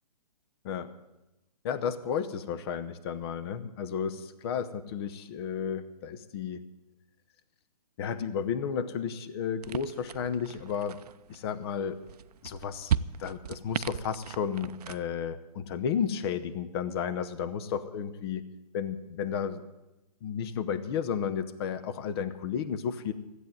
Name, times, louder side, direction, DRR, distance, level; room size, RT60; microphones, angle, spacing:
voice 1, 1.6-6.6 8.0-11.0 11.3-12.0 12.4-18.5 18.7-19.6 20.2-23.1, left 7 dB, 40° left, 11 dB, 0.9 m, -33 dB
sound 1, 9.6-15.0, right 9 dB, 70° right, 0.5 m, -36 dB
13.5 x 8.2 x 9.1 m, 0.98 s
hypercardioid pair, 145°, 21 cm